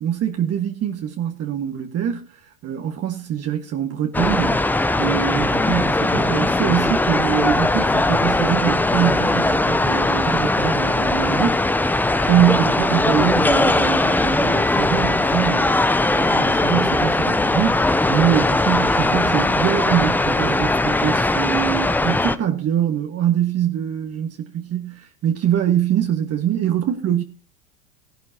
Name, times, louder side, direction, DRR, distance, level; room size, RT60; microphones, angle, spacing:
voice 1, 0.0-4.6 5.0-11.6 12.3-15.8 16.1-27.2, right 10 dB, 35° right, 1.7 m, -23 dB
sound 1, 4.1-22.4, left 2 dB, 5° left, 0.6 m, -19 dB
17.0 x 11.5 x 2.9 m
hypercardioid pair, 85°, 41 cm